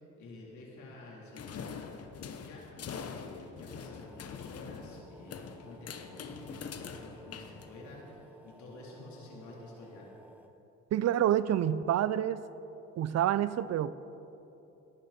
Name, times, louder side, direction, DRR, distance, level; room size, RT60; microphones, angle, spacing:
voice 1, 0.2-1.9 2.4-10.1, left 2 dB, 70° left, -4 dB, 3.9 m, -50 dB
sound 1, 1.4-8.1, left 6 dB, 55° left, 1.0 m, -44 dB
sound 2, 3.8-10.5, right 1 dB, 5° right, 0.9 m, -56 dB
voice 2, 10.9-12.4 13.0-13.9, right 11 dB, 60° right, 16 dB, 0.6 m, -28 dB
17.5 x 11.5 x 4.4 m, 2.9 s
cardioid pair, 90°, 30 cm